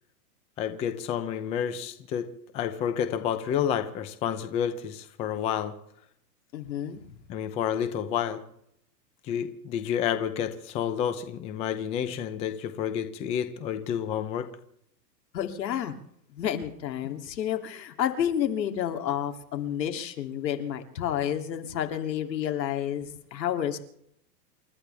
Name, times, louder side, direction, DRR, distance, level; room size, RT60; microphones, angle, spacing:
voice 1, 0.6-2.3 2.5-5.7 7.3-8.4 9.2-14.5, left 9 dB, 15° left, 10 dB, 0.6 m, -30 dB
voice 2, 6.5-7.2 15.3-15.9 16.3-23.8, left 10 dB, 85° left, 6 dB, 3.0 m, -30 dB
28.5 x 13.5 x 3.5 m, 0.70 s
supercardioid pair, 160°, 49 cm